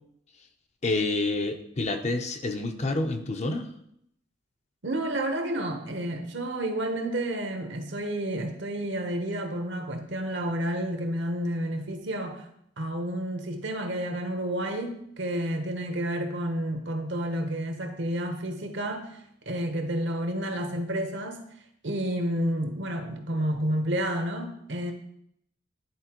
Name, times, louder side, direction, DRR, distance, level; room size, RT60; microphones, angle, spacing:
voice 1, 0.8-3.7, left 2 dB, 35° left, 6 dB, 0.6 m, -28 dB
voice 2, 4.8-12.5 12.8-19.2 19.5-21.4 21.8-24.9, right 1 dB, 60° right, 5 dB, 0.9 m, -30 dB
10.5 x 4.2 x 2.9 m, 0.71 s
head